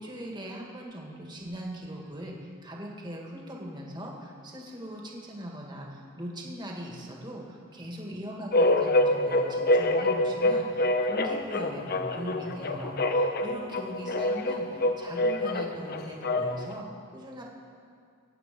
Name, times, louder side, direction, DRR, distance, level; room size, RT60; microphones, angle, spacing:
voice 1, 0.0-17.4, equal, 20° right, -1 dB, 2.1 m, -40 dB
sound 1, 8.5-16.7, left 1 dB, 45° left, 0.8 m, -26 dB
22.0 x 8.8 x 5.4 m, 2.3 s
head